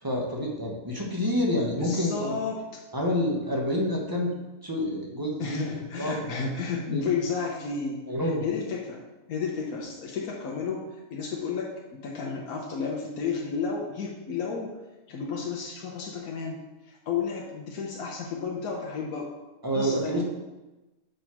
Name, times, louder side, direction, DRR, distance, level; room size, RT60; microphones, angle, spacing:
voice 1, 0.0-2.4 2.9-4.3 4.6-5.7 6.0-6.2 6.9-7.1 8.1-8.4 19.6-20.2, equal, 15° right, -1 dB, 1.0 m, -28 dB
voice 2, 1.8-2.6 5.4-9.0 9.3-10.8 11.1-14.7 15.1-19.3 19.7-20.2, left 5 dB, 85° left, -1 dB, 1.3 m, -32 dB
5.3 x 4.5 x 5.9 m, 1.1 s
omnidirectional pair, 1.5 m